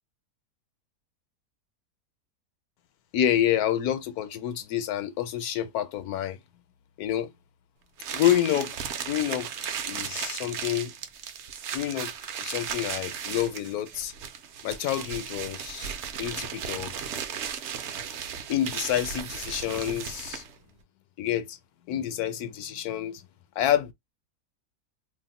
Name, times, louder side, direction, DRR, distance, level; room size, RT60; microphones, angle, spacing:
voice 1, 3.1-6.4 7.0-7.3 8.1-8.7 9.0-10.9 11.7-12.1 12.4-14.1 14.6-16.9 18.5-20.4 21.2-21.6 21.9-23.2 23.6-23.9, left 11 dB, 85° left, 1.1 m, -28 dB
sound 1, 8.0-20.6, right 8 dB, 65° right, 0.7 m, -36 dB
2.7 x 2.1 x 3.9 m
omnidirectional pair, 1.6 m